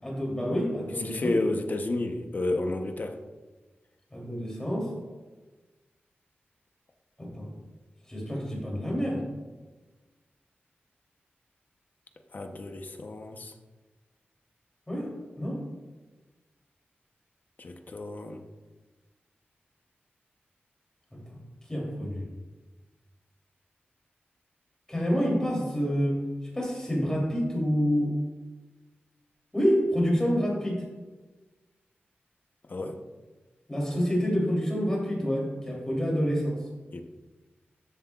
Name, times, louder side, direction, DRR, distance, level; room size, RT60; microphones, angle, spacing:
voice 1, 0.0-1.4 4.1-4.9 7.2-7.5 8.1-9.2 14.9-15.6 21.1-21.4 21.7-22.3 24.9-26.2 26.5-28.1 29.5-30.8 33.7-36.6, equal, 15° left, -3 dB, 3.0 m, -28 dB
voice 2, 1.0-3.1 12.3-13.5 17.6-18.4 32.7-33.0 36.9-37.0, left 2 dB, 45° left, 5 dB, 0.8 m, -31 dB
13.0 x 7.6 x 2.4 m, 1.3 s
wide cardioid pair, 135°, 4 cm